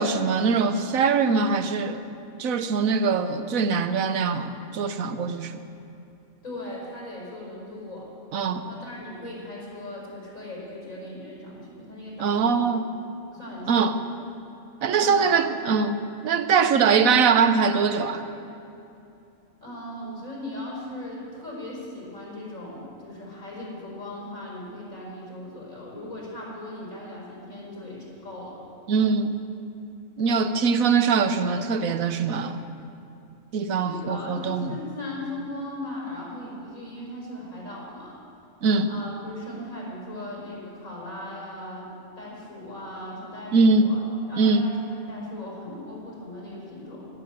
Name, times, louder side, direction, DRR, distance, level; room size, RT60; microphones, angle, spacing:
voice 1, 0.0-2.0 2.4-5.6 8.3-8.6 12.2-12.9 13.7-14.0 14.8-18.2 28.9-29.5 30.2-32.6 33.5-34.7 38.6-38.9 43.5-43.9 44.4-44.7, right 5 dB, 85° right, 9 dB, 1.2 m, -22 dB
voice 2, 6.4-8.1 8.5-12.6 13.3-13.8 14.9-15.5 16.6-17.0 19.6-28.6 30.2-30.5 33.8-38.2 38.9-44.0 44.3-47.1, left 1 dB, 75° left, -4 dB, 5.4 m, -38 dB
12.5 x 12.0 x 8.9 m, 2.7 s
omnidirectional pair, 1.4 m